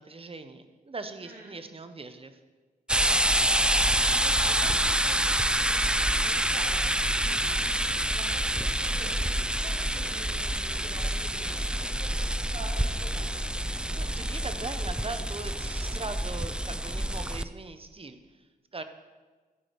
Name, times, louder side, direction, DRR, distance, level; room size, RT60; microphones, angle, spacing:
voice 1, 0.0-2.4 13.7-18.8, right 3 dB, 35° right, 9 dB, 1.0 m, -40 dB
voice 2, 1.2-1.6 3.1-7.7 8.1-13.3, right 1 dB, 60° right, -2 dB, 2.4 m, -47 dB
sound 1, 2.9-17.4, right 1 dB, 5° right, 0.4 m, -27 dB
13.0 x 4.9 x 8.1 m, 1.3 s
cardioid pair, 75°, 16 cm